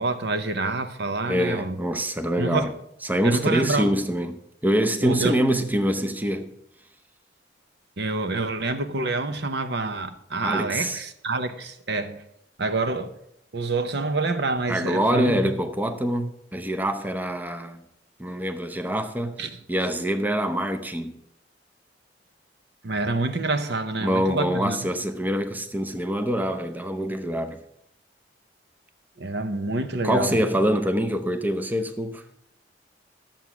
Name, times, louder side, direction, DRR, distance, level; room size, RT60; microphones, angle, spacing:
voice 1, 0.0-1.8 2.4-2.7 3.2-3.9 5.0-5.4 8.0-12.2 12.6-13.1 13.5-15.3 19.4-19.6 22.8-24.8 29.2-30.4, right 3 dB, 65° right, 0.8 m, -27 dB
voice 2, 1.3-2.7 3.0-6.5 10.4-11.0 14.7-17.8 18.2-19.4 19.7-21.1 24.0-27.6 30.0-32.2, equal, 10° right, 0.7 m, -25 dB
11.5 x 7.4 x 6.0 m
head